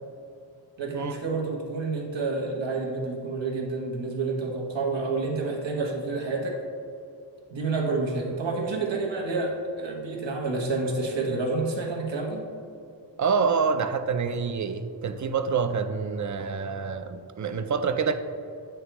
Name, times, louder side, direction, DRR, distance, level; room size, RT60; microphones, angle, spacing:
voice 1, 0.8-6.6 7.5-12.4, right 3 dB, 75° right, -1 dB, 1.0 m, -29 dB
voice 2, 13.2-18.1, right 5 dB, 45° right, 9 dB, 0.4 m, -27 dB
9.3 x 3.4 x 2.9 m, 2.5 s
wide cardioid pair, 85°, 45 cm